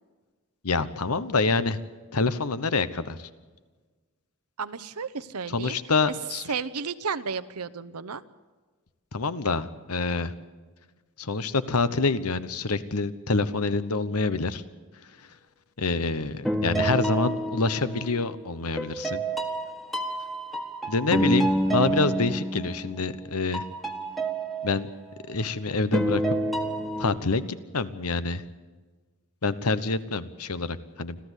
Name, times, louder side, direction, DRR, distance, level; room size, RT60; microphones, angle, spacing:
voice 1, 0.6-1.8 2.1-3.3 5.5-6.5 9.1-10.3 11.2-14.6 15.8-19.2 20.9-23.6 24.6-24.9 25.3-26.2 27.0-28.4 29.4-31.2, left 3 dB, 85° left, 14 dB, 1.1 m, -26 dB
voice 2, 4.6-5.8 6.5-8.2, right 5 dB, 90° right, 15 dB, 0.9 m, -33 dB
sound 1, 16.4-18.3 18.8-23.2 23.5-25.4 25.9-27.2, right 1 dB, ahead, 1.4 m, -28 dB
26.0 x 15.0 x 8.3 m, 1.4 s
head